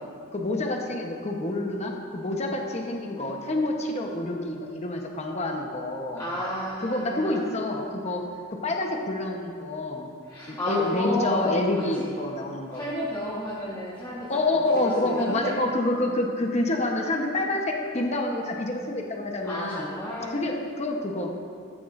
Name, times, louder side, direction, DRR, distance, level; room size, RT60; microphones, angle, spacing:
voice 1, 0.3-6.2 6.8-8.2 8.5-10.1 10.5-12.8 14.3-19.9 20.2-21.3, left 2 dB, 35° left, 1 dB, 1.1 m, -27 dB
voice 2, 6.2-7.4 10.2-12.1 12.7-14.4 14.7-15.5 19.4-20.4, equal, 20° left, -8 dB, 1.5 m, -32 dB
15.0 x 11.5 x 2.6 m, 2.2 s
head